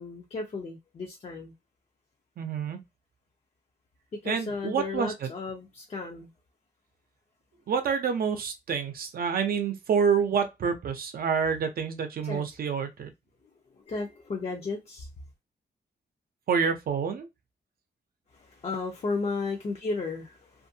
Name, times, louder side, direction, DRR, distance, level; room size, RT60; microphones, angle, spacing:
voice 1, 0.0-1.5 4.1-6.3 12.2-12.4 13.9-15.1 18.3-20.7, left 3 dB, 40° left, 0.5 m, -34 dB
voice 2, 2.4-2.8 4.3-5.3 7.7-13.1 16.5-17.3, right 6 dB, 60° right, 0.6 m, -27 dB
2.6 x 2.5 x 2.7 m
wide cardioid pair, 155°, 17 cm